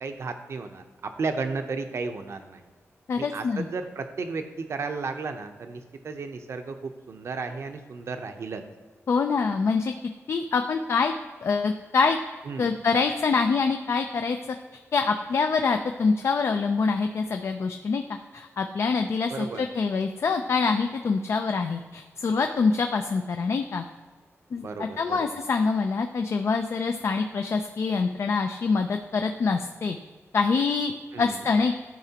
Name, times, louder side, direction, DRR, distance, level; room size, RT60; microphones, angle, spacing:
voice 1, 0.0-2.6 3.1-8.6 12.4-12.7 19.3-19.6 24.6-25.3 31.1-31.4, right 4 dB, 60° right, 6 dB, 0.7 m, -34 dB
voice 2, 3.1-3.7 9.1-9.9 10.3-11.1 11.4-12.2 12.6-14.4 14.9-18.0 18.3-23.8 24.5-30.0 30.3-31.8, left 4 dB, 60° left, 6 dB, 0.4 m, -25 dB
13.0 x 4.9 x 2.9 m, 1.4 s
wide cardioid pair, 140°, 5 cm